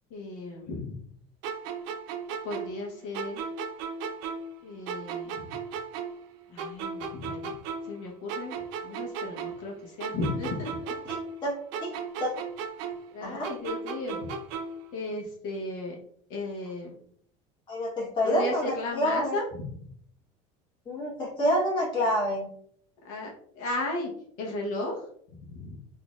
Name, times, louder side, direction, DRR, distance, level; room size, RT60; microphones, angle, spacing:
voice 1, 0.1-1.0 2.4-3.4 4.6-5.5 6.5-7.5 7.9-10.9 13.1-14.3 14.9-15.9 16.3-16.9 18.2-19.8 23.0-23.3 23.6-24.1 24.4-24.9 25.5-25.8, left 2 dB, 80° left, -1 dB, 1.0 m, -35 dB
sound 1, 1.4-4.6 4.9-8.0 8.3-11.4 11.7-14.9, right 5 dB, 75° right, 0.5 m, -36 dB
voice 2, 11.0-11.5 11.8-11.9 12.2-12.3 13.2-13.5 17.7-19.4 20.9-22.5, equal, 30° left, -4 dB, 1.2 m, -28 dB
3.7 x 2.7 x 2.4 m, 0.62 s
cardioid pair, 150°, 16 cm